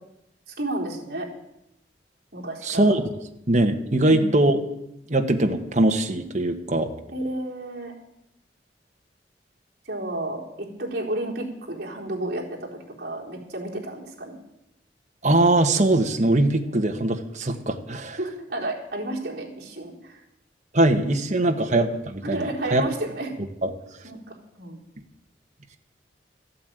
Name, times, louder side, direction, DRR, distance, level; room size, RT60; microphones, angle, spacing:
voice 1, 0.5-1.3 2.3-2.9 4.0-4.4 7.1-7.9 9.8-14.4 18.2-20.2 22.2-23.3 24.0-24.8, right 1 dB, 55° right, -4 dB, 4.1 m, -32 dB
voice 2, 2.6-3.0 3.5-4.6 5.1-6.9 15.2-18.2 20.7-22.8 23.6-23.7, right 1 dB, 40° right, 4 dB, 1.4 m, -21 dB
14.5 x 8.6 x 9.1 m, 0.84 s
head